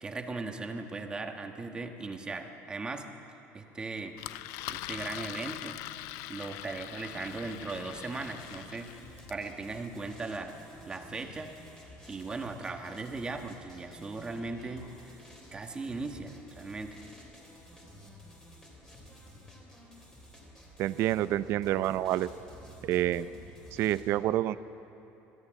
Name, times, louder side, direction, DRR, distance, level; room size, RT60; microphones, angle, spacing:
voice 1, 0.0-3.1 3.5-4.1 4.7-5.8 6.3-8.9 9.3-10.5 10.9-11.5 12.1-15.2 15.5-17.0, right 3 dB, 15° right, 5 dB, 1.3 m, -38 dB
Engine, 4.2-9.4, left 16 dB, 80° left, 0.4 m, -42 dB
sound 1, 7.1-24.0, equal, 10° left, 3.5 m, -52 dB
voice 2, 20.8-22.3 22.8-23.3 23.7-24.6, right 13 dB, 55° right, 15 dB, 0.5 m, -28 dB
21.0 x 14.5 x 8.7 m, 3.0 s
cardioid pair, 155°, 5 cm